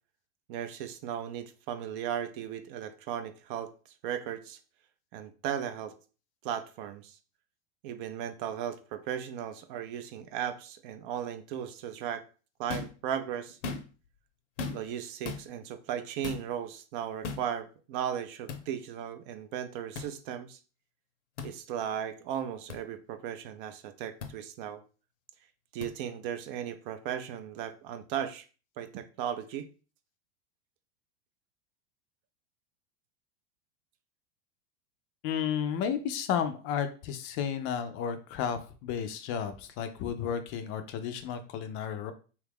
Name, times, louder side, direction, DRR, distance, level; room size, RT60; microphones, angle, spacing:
voice 1, 0.5-3.7 4.0-4.6 5.1-6.0 6.4-7.2 7.8-12.2 12.6-13.6 14.7-20.6 21.4-24.8 25.7-28.5 28.8-29.7, right 9 dB, 45° right, 0.4 m, -36 dB
sound 1, 12.7-13.0 13.5-14.1 14.6-15.0 15.2-15.4 16.2-16.5 17.2-17.5 18.5-18.6 19.9-20.1 21.4-21.5 22.7-22.8 24.2-24.3 25.8-25.9, left 4 dB, 75° left, 0.7 m, -37 dB
voice 2, 35.2-42.1, left 8 dB, 40° left, 0.4 m, -32 dB
2.8 x 2.3 x 3.4 m
hypercardioid pair, 105°, 36 cm